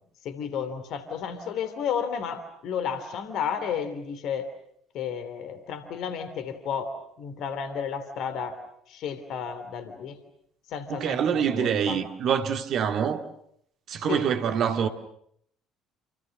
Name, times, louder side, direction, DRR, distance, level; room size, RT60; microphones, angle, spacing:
voice 1, 0.2-4.5 4.9-6.9 7.2-8.6 8.9-10.2 10.7-12.0 14.1-14.3, left 7 dB, 55° left, 3.2 m, -32 dB
voice 2, 10.9-13.3 13.9-14.9, right 8 dB, 50° right, 2.2 m, -25 dB
30.0 x 29.0 x 6.5 m
figure-of-eight pair, 55°, 0 cm